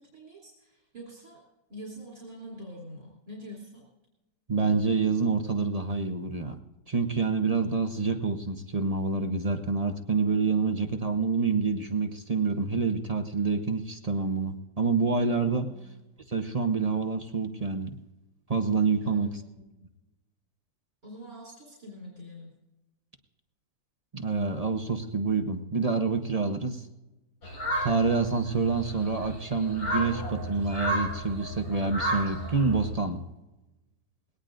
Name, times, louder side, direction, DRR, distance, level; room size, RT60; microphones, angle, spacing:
voice 1, 0.0-1.4 1.7-3.9 15.7-15.9 19.0-19.7 21.0-22.5, equal, 60° right, -5 dB, 3.8 m, -45 dB
voice 2, 4.5-6.6 6.9-15.6 16.3-17.9 18.5-19.3 24.1-26.8 27.8-33.2, right 4 dB, 35° right, 5 dB, 0.7 m, -27 dB
sound 1, 27.4-32.9, right 1 dB, 85° left, 4.8 m, -33 dB
20.5 x 18.0 x 2.6 m, 1.0 s
omnidirectional pair, 1.7 m